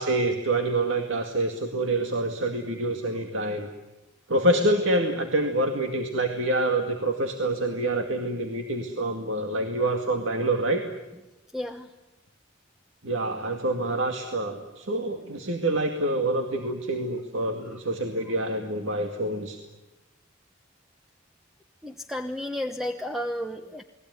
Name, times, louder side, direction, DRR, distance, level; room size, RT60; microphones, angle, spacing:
voice 1, 0.0-3.7 4.3-10.8 13.0-19.6, right 1 dB, 75° right, 4 dB, 2.2 m, -26 dB
voice 2, 11.5-11.9 17.6-17.8 21.8-23.8, left 1 dB, ahead, 6 dB, 1.0 m, -32 dB
29.5 x 20.5 x 9.6 m, 1.0 s
head